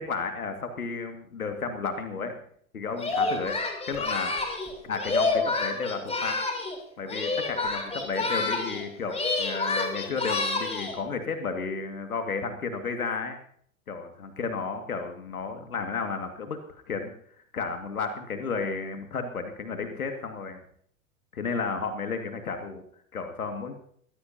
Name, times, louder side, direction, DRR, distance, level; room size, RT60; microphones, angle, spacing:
voice 1, 0.0-2.3 2.7-3.6 3.9-4.3 4.8-6.4 7.0-13.4 13.9-16.6 16.9-17.1 17.5-20.6 21.3-22.8 23.1-23.7, left 4 dB, 80° left, 6 dB, 2.3 m, -32 dB
Singing, 3.0-6.8 7.1-8.8 9.1-11.0, left 3 dB, 15° left, 3.7 m, -28 dB
22.0 x 16.0 x 2.9 m, 0.62 s
figure-of-eight pair, 90°, 42 cm